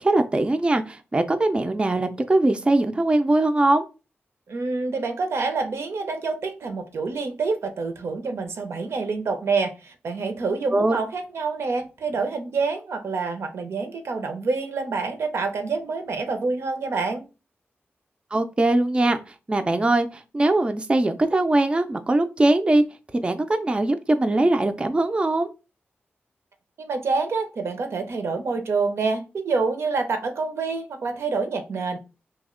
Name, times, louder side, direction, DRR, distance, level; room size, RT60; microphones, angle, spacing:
voice 1, 0.0-3.8 10.7-11.0 18.3-22.8 23.2-25.5, right 2 dB, 25° right, 0.3 m, -21 dB
voice 2, 4.5-17.2 26.8-32.0, right 4 dB, 80° right, 0.6 m, -27 dB
2.7 x 2.1 x 3.6 m
cardioid pair, 70°, 4 cm